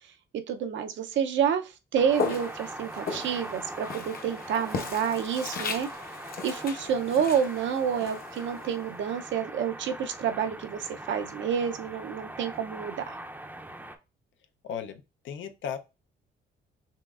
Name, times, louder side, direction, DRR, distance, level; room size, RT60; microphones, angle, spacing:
voice 1, 0.5-5.9 6.4-13.2, right 8 dB, 70° right, 0.6 m, -29 dB
sound 1, 2.0-14.0, right 1 dB, 10° right, 0.6 m, -42 dB
Walk footsteps, 2.1-9.2, left 4 dB, 50° left, 0.9 m, -37 dB
voice 2, 14.6-15.8, left 8 dB, 75° left, 0.6 m, -36 dB
5.6 x 3.1 x 2.4 m
cardioid pair, 90°, 20 cm